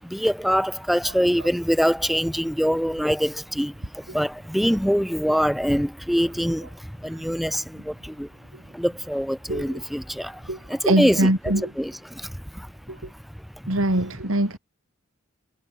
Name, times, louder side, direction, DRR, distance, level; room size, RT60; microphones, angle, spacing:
voice 1, 0.0-8.3 8.6-12.7 13.0-14.0, equal, ahead, 6.3 m, -25 dB
voice 2, 10.9-11.7 13.7-14.6, right 1 dB, 80° right, 3.6 m, -22 dB
head